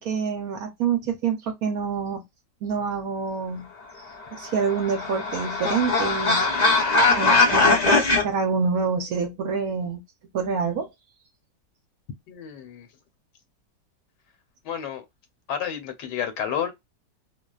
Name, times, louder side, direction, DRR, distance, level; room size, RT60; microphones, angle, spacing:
voice 1, 0.0-2.2 2.6-3.7 4.4-6.4 7.2-10.0 10.3-10.9, right 5 dB, 65° right, 0.9 m, -26 dB
sound 1, 4.3-8.2, left 3 dB, 55° left, 0.4 m, -20 dB
voice 2, 12.3-12.9 14.6-15.0 15.5-16.7, left 8 dB, 75° left, 1.3 m, -30 dB
2.8 x 2.0 x 2.2 m
omnidirectional pair, 1.9 m